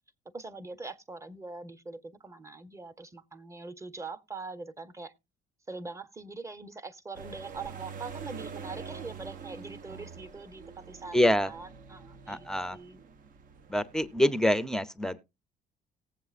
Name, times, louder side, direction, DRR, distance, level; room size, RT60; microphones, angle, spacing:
voice 1, 0.3-5.1 5.7-13.0, right 3 dB, 15° right, 0.9 m, -43 dB
sound 1, 7.1-14.1, right 6 dB, 55° right, 0.9 m, -45 dB
voice 2, 11.1-11.5 12.3-12.8 13.7-15.2, left 1 dB, 5° left, 0.6 m, -26 dB
18.5 x 7.7 x 2.4 m
cardioid pair, 110°, 17 cm